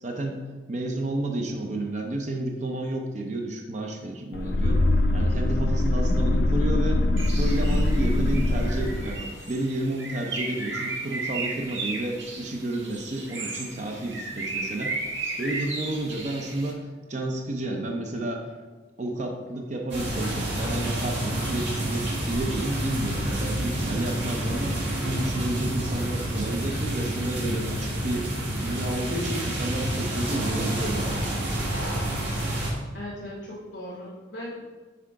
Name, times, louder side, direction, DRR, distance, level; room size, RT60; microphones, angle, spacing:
voice 1, 0.0-4.9 5.1-7.0 7.4-15.0 15.4-18.5 19.0-24.8 25.0-28.3 28.6-32.0, right 1 dB, 40° right, 2 dB, 0.6 m, -31 dB
sound 1, 4.3-9.2, left 1 dB, 55° left, 0.4 m, -23 dB
Bird, 7.2-16.7, right 3 dB, 90° right, 1.3 m, -35 dB
sound 2, 19.9-32.7, right 1 dB, 70° right, 1.6 m, -29 dB
voice 2, 32.9-34.6, left 1 dB, 75° left, -6 dB, 1.2 m, -38 dB
5.9 x 3.7 x 4.8 m, 1.3 s
head